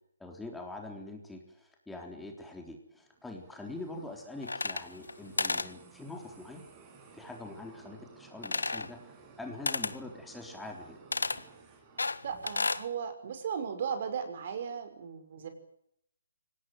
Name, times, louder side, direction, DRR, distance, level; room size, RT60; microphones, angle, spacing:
voice 1, 0.2-6.6 7.1-11.0, left 2 dB, 5° left, 2 dB, 3.7 m, -44 dB
sound 1, 3.1-12.9, right 5 dB, 20° right, 5.8 m, -56 dB
sound 2, 4.4-5.1 5.4-5.7 8.4-8.9 9.7-10.0 11.1-11.4 12.0-12.9, left 3 dB, 80° left, 1.6 m, -32 dB
voice 2, 12.2-15.5, right 7 dB, 45° right, 9 dB, 5.6 m, -36 dB
26.0 x 18.5 x 9.2 m, 0.73 s
figure-of-eight pair, 145°, 0 cm